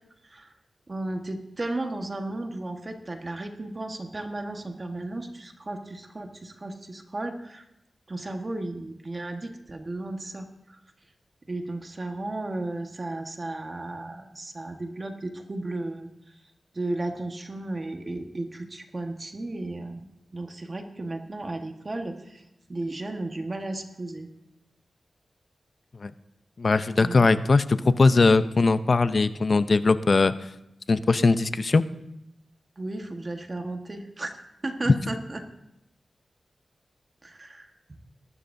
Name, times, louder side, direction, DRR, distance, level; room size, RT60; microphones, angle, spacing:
voice 1, 0.9-7.6 8.1-10.8 11.5-16.1 16.7-22.4 22.7-24.3 27.0-27.3 32.8-34.3 34.6-35.4 37.2-37.7, right 2 dB, 40° right, 4 dB, 1.4 m, -34 dB
voice 2, 26.6-30.3 30.9-31.8, left 3 dB, 55° left, 13 dB, 0.6 m, -20 dB
21.0 x 12.5 x 2.7 m, 0.84 s
cardioid pair, 60°, 0 cm